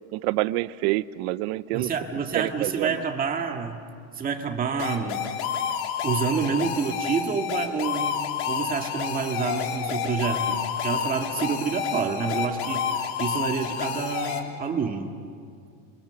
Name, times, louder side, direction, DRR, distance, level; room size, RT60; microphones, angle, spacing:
voice 1, 0.1-1.9 2.3-3.0, right 18 dB, 80° right, 17 dB, 0.8 m, -27 dB
voice 2, 1.7-3.8 4.2-5.3 6.0-15.1, right 5 dB, 25° right, 4 dB, 1.9 m, -28 dB
sound 1, 4.8-14.4, left 7 dB, 75° left, 2.6 m, -29 dB
27.0 x 24.5 x 7.0 m, 2.3 s
cardioid pair, 150°, 32 cm